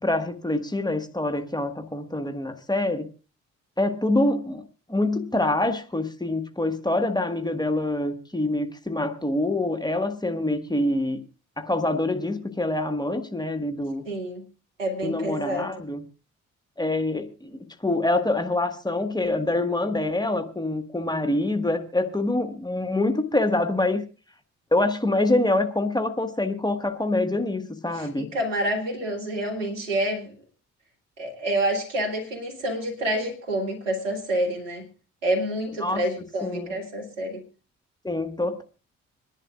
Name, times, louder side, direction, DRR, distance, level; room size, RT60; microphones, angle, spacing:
voice 1, 0.0-3.1 3.8-11.2 11.6-14.0 15.0-16.0 16.8-24.0 24.7-28.3 35.8-36.0 36.4-36.8 38.0-38.6, left 2 dB, 10° left, 7 dB, 1.6 m, -25 dB
voice 2, 14.1-14.4 14.8-15.7 27.9-30.3 31.2-34.8 35.2-37.4, right 1 dB, 85° right, -2 dB, 2.2 m, -28 dB
26.5 x 11.0 x 2.5 m, 0.33 s
figure-of-eight pair, 40°, 37 cm